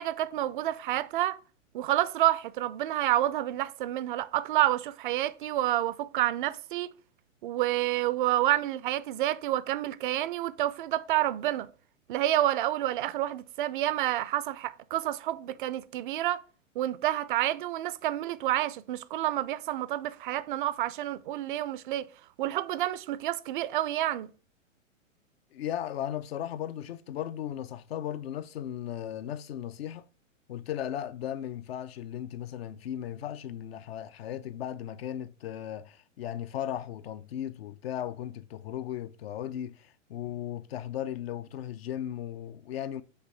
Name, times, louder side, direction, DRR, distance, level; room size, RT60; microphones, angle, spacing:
voice 1, 0.0-1.4 1.7-6.9 7.4-11.7 12.1-16.4 16.8-22.1 22.4-24.3, right 14 dB, 40° right, 0.5 m, -29 dB
voice 2, 25.5-30.0 30.5-43.0, left 11 dB, 50° left, 0.6 m, -36 dB
8.0 x 3.2 x 5.9 m
figure-of-eight pair, 110°, 40 cm